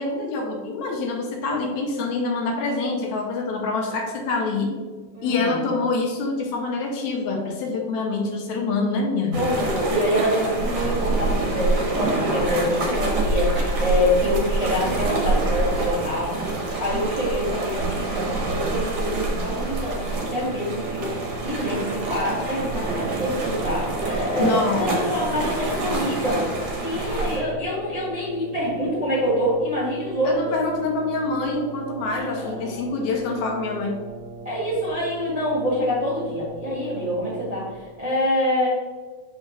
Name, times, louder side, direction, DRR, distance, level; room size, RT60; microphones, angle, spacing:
voice 1, 0.0-4.7 5.2-9.4 24.4-25.0 30.2-34.0, left 3 dB, 75° left, 1 dB, 2.0 m, -26 dB
voice 2, 5.1-5.7 9.3-30.5 32.1-32.9 34.4-38.7, left 1 dB, 15° right, -8 dB, 1.3 m, -26 dB
sound 1, 9.3-27.4, right 2 dB, 50° right, 1.3 m, -26 dB
Brass instrument, 20.1-37.9, right 3 dB, 90° right, 2.1 m, -39 dB
6.4 x 5.7 x 3.3 m, 1.5 s
omnidirectional pair, 3.5 m